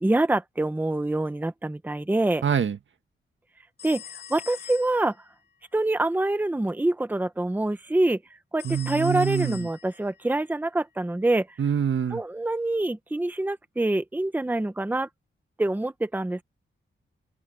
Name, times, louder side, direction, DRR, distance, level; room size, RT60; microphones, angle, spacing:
voice 1, 0.0-2.4 3.8-4.0 4.3-5.1 5.7-8.2 8.5-11.5 12.1-15.1 15.6-16.4, right 2 dB, 10° right, 0.9 m, -25 dB
voice 2, 2.4-2.8 8.6-9.7 11.6-12.2, right 8 dB, 65° right, 1.5 m, -25 dB
sound 1, 3.8-5.2 8.6-10.2, left 10 dB, 50° left, 3.6 m, -43 dB
wide cardioid pair, 140°, 21 cm